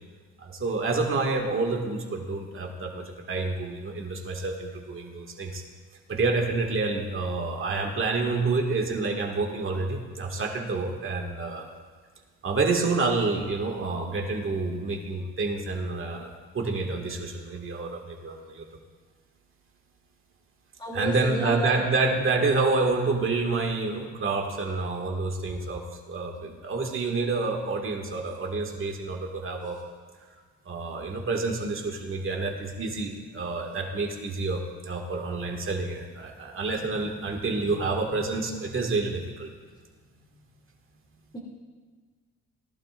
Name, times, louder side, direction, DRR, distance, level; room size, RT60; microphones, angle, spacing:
voice 1, 0.4-5.6 6.1-11.7 12.4-18.7 20.9-29.8 30.7-39.5 40.2-40.3, right 3 dB, 45° right, 1 dB, 2.1 m, -28 dB
voice 2, 20.8-21.8 41.3-41.4, left 2 dB, 15° left, -6 dB, 2.5 m, -32 dB
18.5 x 12.0 x 2.6 m, 1.5 s
cardioid pair, 90°, 30 cm